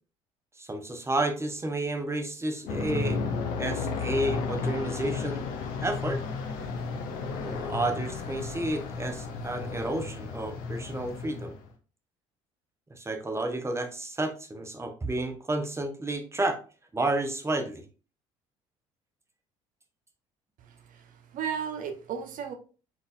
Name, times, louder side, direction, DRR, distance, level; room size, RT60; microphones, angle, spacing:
voice 1, 0.6-3.2 3.6-5.5 5.8-6.2 7.4-11.5 12.9-16.6 16.9-17.8, right 2 dB, 15° right, 5 dB, 1.0 m, -31 dB
Aircraft, 2.7-11.7, left 4 dB, 65° left, 0.9 m, -33 dB
voice 2, 20.6-22.5, right 7 dB, 55° right, 7 dB, 0.9 m, -35 dB
4.3 x 3.9 x 2.6 m, 0.36 s
hypercardioid pair, 60°, 16 cm